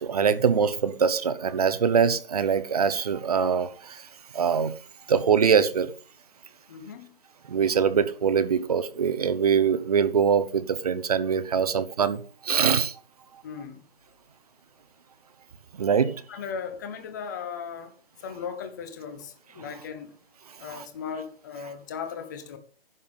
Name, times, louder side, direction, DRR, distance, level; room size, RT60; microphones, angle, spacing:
voice 1, 0.0-4.0 4.3-4.7 5.1-5.9 7.5-12.9 15.8-16.2 20.7-20.8, right 6 dB, 40° right, 0.8 m, -23 dB
voice 2, 6.7-7.2 13.4-13.8 16.3-17.9 18.2-20.1 20.6-22.6, left 6 dB, 20° left, 1.1 m, -37 dB
11.0 x 7.1 x 5.5 m
hypercardioid pair, 170°, 30 cm